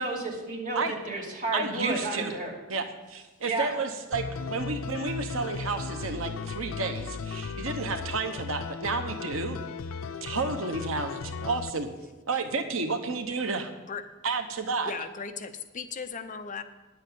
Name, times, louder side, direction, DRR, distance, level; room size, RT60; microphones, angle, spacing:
voice 1, 0.0-2.6 3.5-3.7, right 2 dB, 40° right, -2 dB, 2.6 m, -31 dB
voice 2, 1.5-2.3 2.7-9.6 10.2-11.9 12.3-13.7 14.2-14.9, right 4 dB, 85° right, 6 dB, 1.0 m, -31 dB
sound 1, 4.1-11.7, left 4 dB, 90° left, 0.5 m, -36 dB
voice 3, 14.8-16.6, left 5 dB, 40° left, 9 dB, 0.6 m, -37 dB
10.5 x 8.0 x 6.9 m, 1.2 s
head